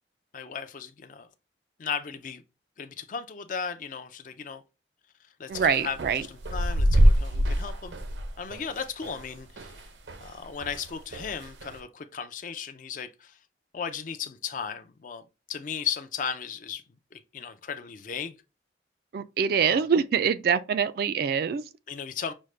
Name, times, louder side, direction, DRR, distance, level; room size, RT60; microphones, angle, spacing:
voice 1, 0.3-1.3 1.8-2.4 2.8-4.6 5.4-6.0 6.3-7.9 8.4-9.7 10.2-13.4 13.7-15.2 15.5-16.8 17.1-18.3 19.6-19.8 21.9-22.3, left 6 dB, 45° left, 0.4 m, -36 dB
voice 2, 5.5-6.2 19.1-21.7, right 7 dB, 55° right, 0.3 m, -25 dB
sound 1, 5.5-10.3 10.6-11.8, equal, 90° right, 0.6 m, -25 dB
6.1 x 2.1 x 3.2 m
head